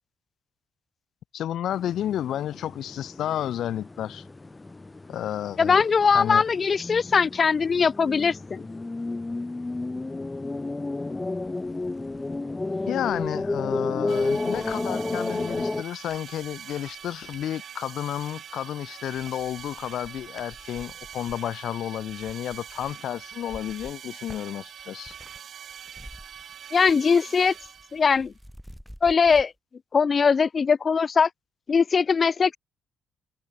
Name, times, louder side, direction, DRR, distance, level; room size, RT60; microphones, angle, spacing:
voice 1, 1.3-4.2 5.1-6.4 12.9-25.2, left 11 dB, 75° left, 1.2 m, -31 dB
sound 1, 1.7-15.8, left 2 dB, 20° left, 1.0 m, -32 dB
voice 2, 5.6-8.7 26.7-27.5 27.9-28.3 29.0-29.5 29.9-31.3 31.7-32.6, left 5 dB, 40° left, 0.4 m, -21 dB
sound 2, 10.8-10.9 11.3-17.5 18.1-18.7 19.0-25.4 25.7-27.1 27.4-29.5, equal, ahead, 4.0 m, -50 dB
sound 3, 14.1-28.2, right 9 dB, 60° right, 0.8 m, -43 dB
cardioid pair, 90°, 0 cm